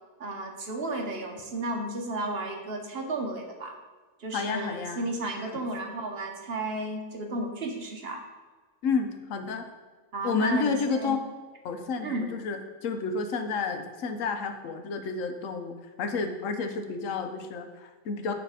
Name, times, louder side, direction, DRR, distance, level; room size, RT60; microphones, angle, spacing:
voice 1, 0.2-3.8 4.2-8.2 10.1-11.2 12.0-12.3, right 2 dB, 55° right, 3 dB, 1.0 m, -33 dB
voice 2, 4.3-5.1 5.4-5.6 8.8-9.7 10.2-11.2 11.6-18.3, left 4 dB, 80° left, 6 dB, 1.1 m, -30 dB
8.9 x 3.3 x 4.8 m, 1.4 s
omnidirectional pair, 1.4 m